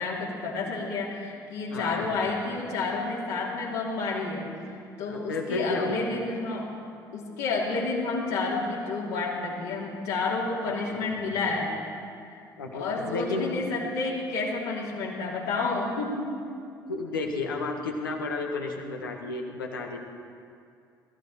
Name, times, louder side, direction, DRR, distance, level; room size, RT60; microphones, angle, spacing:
voice 1, 0.0-4.4 5.0-6.7 7.1-11.7 12.3-12.4 12.7-16.3, left 3 dB, 65° left, -3 dB, 3.3 m, -30 dB
voice 2, 1.7-2.1 5.1-6.1 10.6-11.1 12.6-13.6 16.9-20.0, left 3 dB, 80° left, 2 dB, 1.5 m, -32 dB
21.5 x 14.5 x 4.5 m, 2.4 s
figure-of-eight pair, 55°, 11 cm